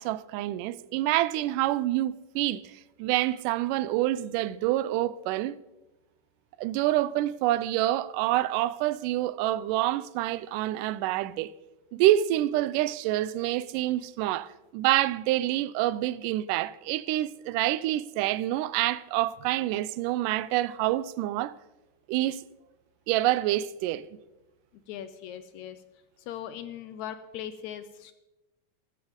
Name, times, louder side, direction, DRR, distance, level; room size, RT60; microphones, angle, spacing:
voice 1, 0.0-2.7 3.0-5.6 6.6-11.5 11.9-21.5 22.1-22.4 23.1-24.0, right 15 dB, 90° right, 2.1 m, -27 dB
voice 2, 24.9-25.8 26.3-28.1, left 10 dB, 80° left, 1.7 m, -39 dB
14.5 x 13.0 x 3.7 m
omnidirectional pair, 3.7 m